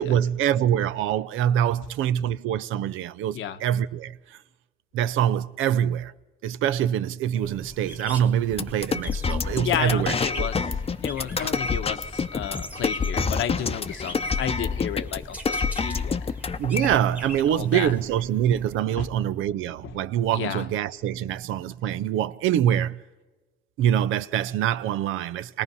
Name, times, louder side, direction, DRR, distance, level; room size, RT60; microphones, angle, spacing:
voice 1, 0.0-4.4 4.9-6.1 6.4-10.5 11.4-11.5 16.6-23.0 23.8-25.6, right 10 dB, 90° right, 0.6 m, -25 dB
sound 1, 7.3-18.8, equal, 5° right, 1.4 m, -42 dB
sound 2, 8.5-17.0, left 5 dB, 30° left, 0.7 m, -28 dB
voice 2, 9.6-10.6 11.0-16.3 17.5-18.0 19.0-19.1 19.8-19.9 20.3-20.7, left 10 dB, 80° left, 1.1 m, -32 dB
27.0 x 18.5 x 5.5 m
cardioid pair, 90°, 20 cm